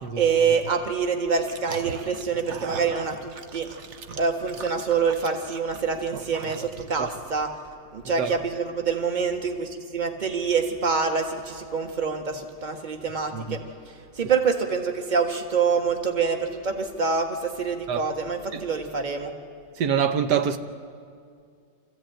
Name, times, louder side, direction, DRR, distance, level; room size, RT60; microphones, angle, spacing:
voice 1, 0.2-3.7 4.2-7.5 7.9-13.6 14.2-19.3, right 5 dB, 25° right, 1.5 m, -26 dB
sound 1, 1.4-7.1, right 6 dB, 50° right, 1.0 m, -39 dB
voice 2, 13.3-13.7 17.9-18.1 18.5-18.6 19.8-20.6, right 7 dB, 70° right, 1.5 m, -25 dB
25.0 x 15.0 x 9.0 m
omnidirectional pair, 1.9 m